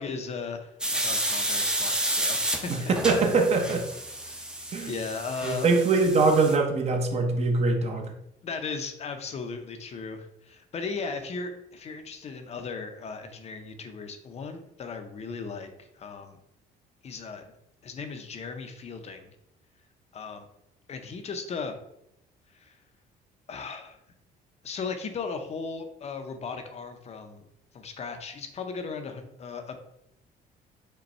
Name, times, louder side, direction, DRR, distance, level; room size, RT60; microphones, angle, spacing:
voice 1, 0.0-2.9 4.2-5.7 8.4-16.4 17.0-17.5 17.8-19.3 20.1-20.5 20.9-21.7 22.5-22.8 23.5-24.0 24.6-27.5 27.7-29.8, left 4 dB, 40° left, 7 dB, 0.6 m, -37 dB
sound 1, 0.8-6.6, right 1 dB, 5° right, 0.6 m, -31 dB
voice 2, 2.7-3.9 4.7-4.9 5.4-8.1, right 3 dB, 40° right, 4 dB, 0.8 m, -23 dB
5.2 x 2.2 x 4.2 m, 0.79 s
cardioid pair, 110°, 17 cm